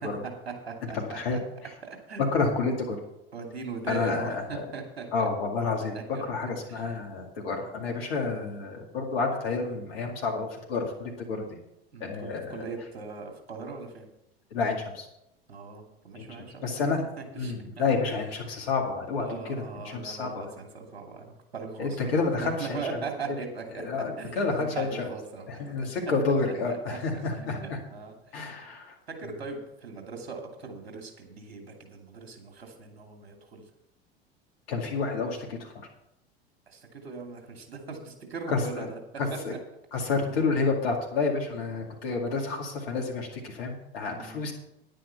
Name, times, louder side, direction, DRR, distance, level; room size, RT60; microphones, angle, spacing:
voice 1, 0.0-1.2 1.8-2.4 3.3-5.1 5.7-6.2 6.7-6.8 11.9-14.1 15.5-16.9 17.2-17.5 19.2-25.9 26.7-28.5 29.1-33.6 36.7-39.0 44.1-44.4, right 4 dB, 80° right, 3 dB, 2.6 m, -40 dB
voice 2, 0.9-1.4 2.3-3.0 3.9-4.6 5.1-11.5 12.0-12.5 14.5-15.1 16.1-16.3 16.6-17.0 17.4-20.5 21.8-22.8 23.8-25.1 25.5-27.8 28.3-28.9 34.7-35.7 38.5-38.9 39.2-39.5 39.9-44.5, left 4 dB, 70° left, 0 dB, 2.3 m, -29 dB
10.5 x 9.1 x 5.8 m, 0.85 s
hypercardioid pair, 80°, 31 cm